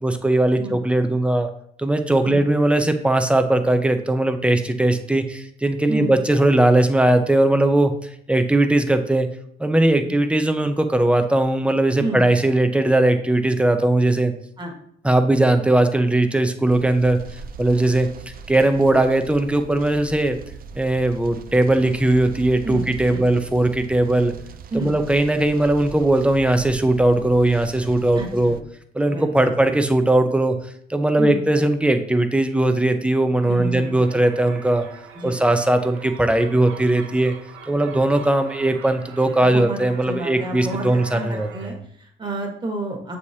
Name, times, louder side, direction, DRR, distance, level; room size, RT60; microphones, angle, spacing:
voice 1, 0.0-1.5 1.8-9.3 9.6-14.3 15.0-17.2 17.6-18.1 18.5-20.4 20.8-24.3 24.7-28.6 28.9-30.5 30.9-34.8 35.2-37.3 37.7-41.7, right 1 dB, 5° right, 7 dB, 0.6 m, -19 dB
sound 1, 16.7-28.6, right 6 dB, 45° right, 0.4 m, -39 dB
voice 2, 22.6-23.3 24.7-24.9 28.1-28.6 29.1-29.5 31.2-31.4 33.5-34.2 35.1-35.4 39.4-39.8 40.1-43.2, right 1 dB, 25° right, 1 dB, 1.5 m, -30 dB
sound 2, 33.4-41.7, right 6 dB, 90° right, 0.8 m, -43 dB
7.0 x 4.8 x 2.8 m, 0.67 s
cardioid pair, 90°, 20 cm